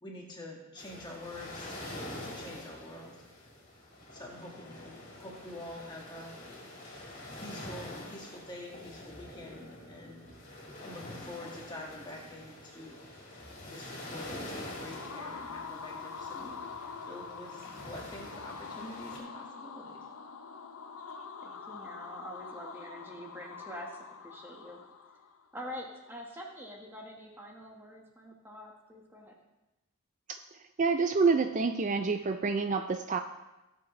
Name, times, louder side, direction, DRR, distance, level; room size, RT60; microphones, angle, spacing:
voice 1, 0.0-1.8 2.2-3.1 4.1-6.4 7.4-10.3 10.8-13.1 13.7-16.6 17.0-20.0, left 1 dB, 20° left, -1 dB, 1.8 m, -46 dB
sound 1, 0.8-19.2, left 1 dB, 35° left, 3.4 m, -46 dB
sound 2, 14.5-25.4, left 5 dB, 70° left, 0.7 m, -45 dB
voice 2, 21.4-24.8 25.5-29.4, equal, 10° right, 0 dB, 1.4 m, -45 dB
voice 3, 30.8-33.2, right 4 dB, 35° right, 8 dB, 0.3 m, -27 dB
17.0 x 7.4 x 3.2 m, 1.0 s
head